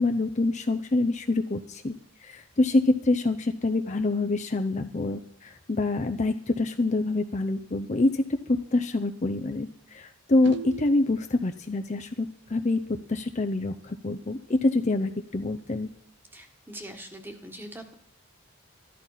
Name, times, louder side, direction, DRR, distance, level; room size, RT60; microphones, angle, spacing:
voice 1, 0.0-1.9 2.2-12.8 13.1-15.9, left 2 dB, 35° left, 7 dB, 0.6 m, -26 dB
sound 1, 10.4-11.2 12.9-13.0 13.2-13.3 13.8-13.9 14.3-14.4 15.2-16.0, right 6 dB, 55° right, 0.6 m, -39 dB
voice 2, 16.3-17.9, right 1 dB, 10° right, 5 dB, 1.4 m, -42 dB
14.0 x 11.5 x 5.7 m, 0.69 s
head